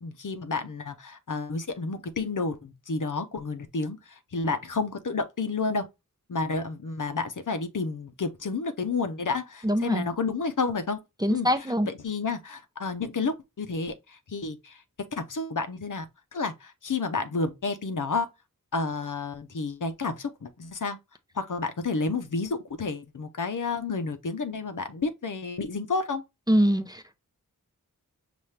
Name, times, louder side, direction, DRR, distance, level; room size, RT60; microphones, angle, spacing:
voice 1, 0.0-5.9 6.3-11.0 11.3-14.8 15.1-16.0 16.3-18.3 18.7-21.0 21.3-26.2, left 4 dB, 65° left, 0.8 m, -30 dB
voice 2, 9.6-10.1 11.2-11.9 26.5-27.1, equal, 10° right, 0.7 m, -24 dB
5.6 x 2.6 x 3.2 m
wide cardioid pair, 50°, 34 cm